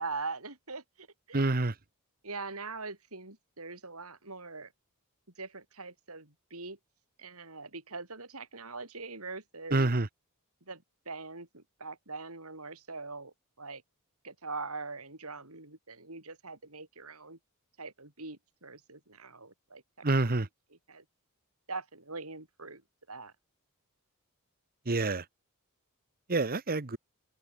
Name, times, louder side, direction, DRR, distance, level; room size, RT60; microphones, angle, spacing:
voice 1, 0.0-1.6 2.2-4.7 5.4-6.8 7.2-10.0 10.7-13.8 14.2-17.4 17.8-19.8 20.9-21.0 21.7-22.8 23.1-23.3, right 3 dB, 75° right, 7.2 m, -42 dB
voice 2, 1.3-1.7 9.7-10.1 20.0-20.5 24.8-25.2 26.3-27.0, right 2 dB, 40° right, 1.2 m, -27 dB
open air
head